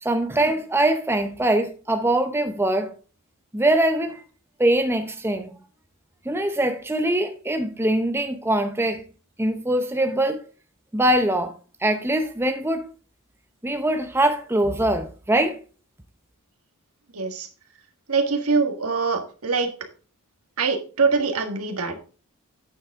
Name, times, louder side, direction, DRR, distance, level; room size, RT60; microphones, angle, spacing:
voice 1, 0.0-2.9 3.5-4.2 4.6-5.5 6.3-9.0 9.4-10.4 10.9-11.5 11.8-12.9 13.6-15.6, right 1 dB, 10° right, 0.7 m, -22 dB
voice 2, 17.1-17.5 18.1-19.7 20.6-22.0, right 4 dB, 70° right, 1.6 m, -23 dB
8.9 x 7.3 x 3.6 m
head